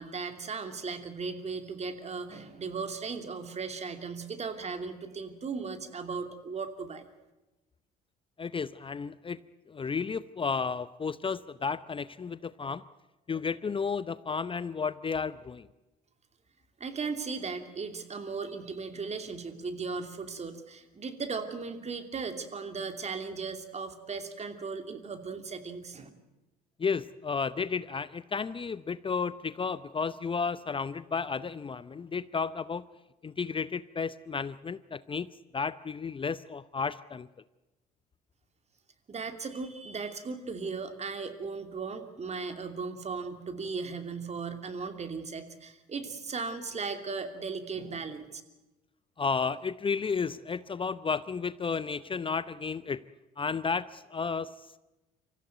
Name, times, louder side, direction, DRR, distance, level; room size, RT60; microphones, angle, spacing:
voice 1, 0.0-7.1 16.8-26.1 39.1-48.4, right 4 dB, 35° right, 7 dB, 2.8 m, -37 dB
voice 2, 8.4-9.4 9.7-12.8 13.3-15.7 26.8-32.8 33.2-35.3 35.5-37.3 49.2-53.0 53.4-54.5, left 5 dB, 25° left, 16 dB, 0.7 m, -32 dB
25.0 x 15.0 x 9.3 m, 1.0 s
hypercardioid pair, 65°, 19 cm